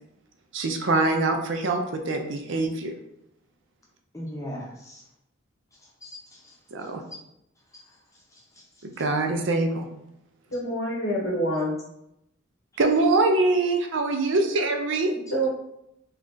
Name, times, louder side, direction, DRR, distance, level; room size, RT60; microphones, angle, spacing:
voice 1, 0.5-2.9 6.7-7.0 8.8-9.9 12.8-15.1, right 2 dB, 60° right, 4 dB, 0.5 m, -24 dB
voice 2, 4.1-5.0 5.7-6.9 7.7-9.0, equal, 15° left, -3 dB, 0.7 m, -42 dB
voice 3, 10.5-11.7 15.3-15.5, right 1 dB, 75° left, -1 dB, 1.0 m, -26 dB
3.2 x 2.4 x 3.8 m, 0.82 s
head